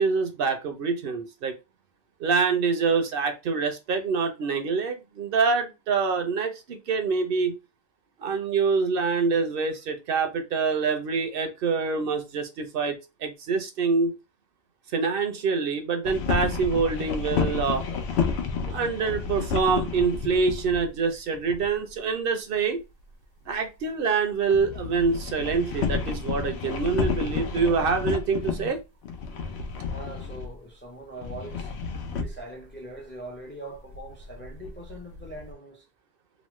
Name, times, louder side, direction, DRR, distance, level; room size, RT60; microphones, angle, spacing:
voice 1, 0.0-1.5 2.2-7.6 8.2-14.2 14.9-17.9 18.7-22.8 23.5-28.8, right 5 dB, 65° right, 0.7 m, -25 dB
sound 1, 16.0-20.9 21.3-21.9 24.5-28.8 29.0-30.6 31.2-32.4 33.7-35.5, left 5 dB, 85° left, 0.9 m, -31 dB
voice 2, 29.8-31.7 32.1-35.8, right 1 dB, 15° left, 0.4 m, -42 dB
3.0 x 2.1 x 3.0 m
omnidirectional pair, 1.1 m